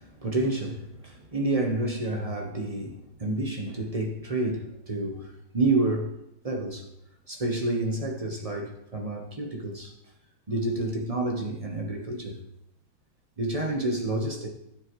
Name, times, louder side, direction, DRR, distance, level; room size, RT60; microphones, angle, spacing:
voice 1, 0.0-6.1 6.4-6.9 7.3-9.9 10.5-12.4 13.4-14.5, right 2 dB, 35° right, 0.5 m, -29 dB
15.0 x 7.2 x 3.1 m
omnidirectional pair, 2.3 m